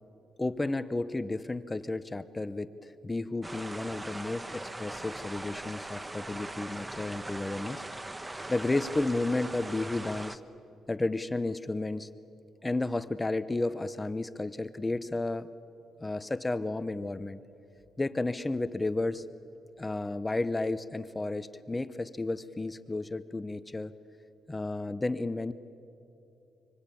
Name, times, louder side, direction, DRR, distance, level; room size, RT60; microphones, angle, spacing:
voice 1, 0.4-7.9 8.5-10.4 10.9-12.1 12.6-15.5 16.0-17.4 18.0-19.2 19.8-23.9 24.5-25.5, left 2 dB, 15° left, 14 dB, 0.8 m, -32 dB
sound 1, 3.4-10.4, right 2 dB, 15° right, 1.1 m, -40 dB
26.0 x 25.0 x 8.6 m, 2.8 s
cardioid pair, 90°, 0 cm